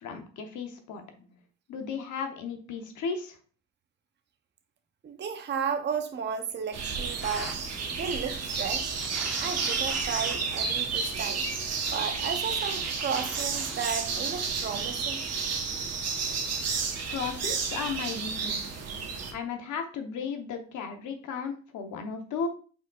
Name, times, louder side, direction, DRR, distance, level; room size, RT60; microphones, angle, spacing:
voice 1, 0.0-1.0 1.7-3.4 17.1-18.8 19.3-22.5, left 5 dB, 75° left, 5 dB, 0.9 m, -35 dB
voice 2, 5.0-7.5 7.9-9.0 9.4-11.5 11.9-15.2, right 6 dB, 35° right, 7 dB, 0.6 m, -33 dB
sound 1, 6.7-19.3, right 5 dB, 55° right, 1.0 m, -31 dB
sound 2, 7.2-7.6 8.9-10.7 11.8-12.0 12.5-13.9, equal, ahead, 1.2 m, -41 dB
5.0 x 3.8 x 2.3 m, 0.40 s
cardioid pair, 90°, 30 cm